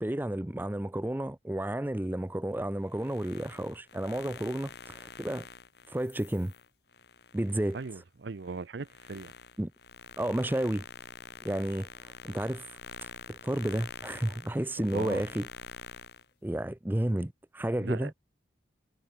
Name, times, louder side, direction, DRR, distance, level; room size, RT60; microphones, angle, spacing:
voice 1, 0.0-5.5 5.9-6.5 7.3-8.0 9.6-9.7 10.2-10.8 11.4-11.9 12.2-12.7 13.3-15.5 16.4-18.1, right 1 dB, 10° right, 0.4 m, -31 dB
sound 1, 2.9-8.0 8.4-16.3, left 5 dB, 55° left, 1.7 m, -47 dB
voice 2, 7.7-9.3 14.8-15.2 17.8-18.1, right 4 dB, 65° right, 0.6 m, -38 dB
head